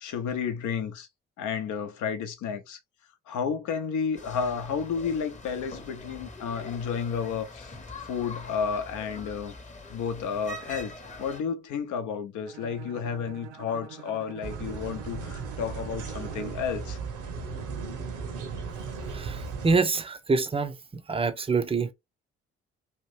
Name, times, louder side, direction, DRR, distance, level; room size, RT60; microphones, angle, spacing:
voice 1, 0.0-1.1 1.4-2.8 3.3-7.7 8.0-9.5 9.9-10.9 11.2-17.0, left 6 dB, 65° left, 0.7 m, -31 dB
sound 1, 4.1-11.4, left 2 dB, 20° left, 0.9 m, -43 dB
Bowed string instrument, 12.4-16.7, right 8 dB, 85° right, 0.6 m, -45 dB
sound 2, 14.4-19.8, right 5 dB, 65° right, 1.0 m, -36 dB
voice 2, 19.1-20.7 21.1-21.9, right 4 dB, 15° right, 0.6 m, -26 dB
2.9 x 2.6 x 3.2 m
hypercardioid pair, 40°, 33 cm